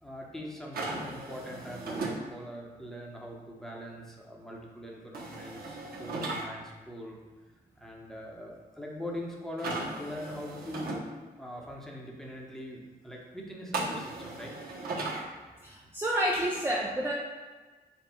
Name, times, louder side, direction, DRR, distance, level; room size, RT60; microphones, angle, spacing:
voice 1, 0.0-7.2 7.8-11.1 11.4-14.5, left 1 dB, ahead, -2 dB, 1.0 m, -42 dB
sound 1, 0.7-2.2 5.1-6.4 9.6-11.0 13.7-15.2, right 2 dB, 65° right, 1.0 m, -36 dB
voice 2, 15.6-17.1, right 1 dB, 15° right, -2 dB, 0.5 m, -29 dB
4.4 x 2.3 x 4.4 m, 1.3 s
cardioid pair, 70°, 17 cm